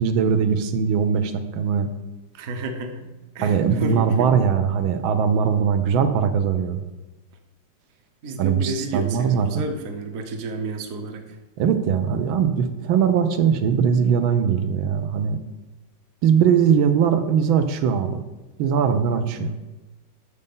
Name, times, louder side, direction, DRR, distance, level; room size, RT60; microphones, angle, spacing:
voice 1, 0.0-1.9 3.4-6.8 8.4-9.6 11.6-15.4 16.2-18.2 18.6-19.5, right 7 dB, 85° right, 8 dB, 1.5 m, -20 dB
voice 2, 2.3-3.1 3.3-4.3 8.2-11.4 19.4-19.5, right 3 dB, 50° right, 5 dB, 1.2 m, -31 dB
6.8 x 6.7 x 5.4 m, 1.1 s
omnidirectional pair, 2.1 m